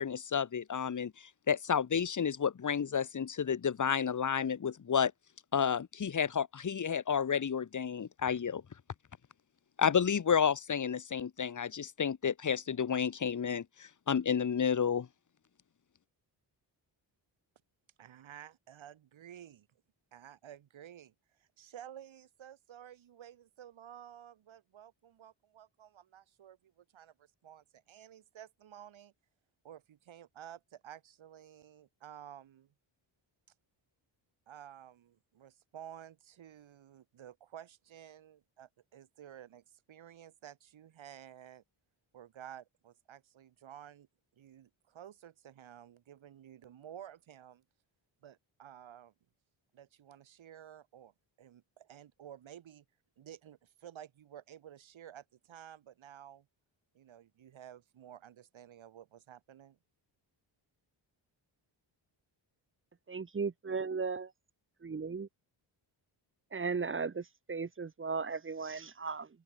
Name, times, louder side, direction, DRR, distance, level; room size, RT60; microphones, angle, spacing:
voice 1, 0.0-5.1 5.5-8.6 9.8-15.1, left 7 dB, 40° left, 1.7 m, -31 dB
voice 2, 18.0-19.7 20.1-29.1 29.6-32.7 34.5-41.6 42.1-44.1 44.3-47.6 48.2-49.1 49.7-52.9 53.2-56.5 56.9-59.8, right 10 dB, 85° right, 7.5 m, -53 dB
voice 3, 63.1-64.3 64.8-65.3 66.5-69.3, right 5 dB, 25° right, 1.0 m, -36 dB
open air
cardioid pair, 110°, 46 cm